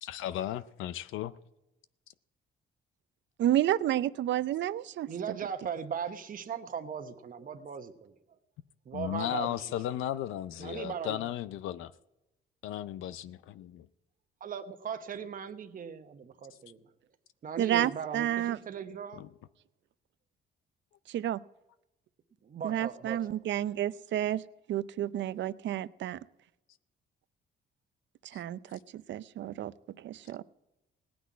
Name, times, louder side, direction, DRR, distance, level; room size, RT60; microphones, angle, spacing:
voice 1, 0.0-1.3 8.9-11.9 12.6-13.9 19.2-19.3, left 12 dB, 85° left, 0.5 m, -35 dB
voice 2, 3.4-5.4 17.6-18.6 21.1-21.4 22.6-24.4 24.7-26.2 28.2-30.4, right 12 dB, 65° right, 0.6 m, -31 dB
voice 3, 5.1-8.1 8.9-9.6 10.6-11.2 14.4-16.8 17.4-19.2 22.4-23.2, right 7 dB, 45° right, 1.0 m, -38 dB
18.0 x 6.1 x 9.4 m
cardioid pair, 90°, 20 cm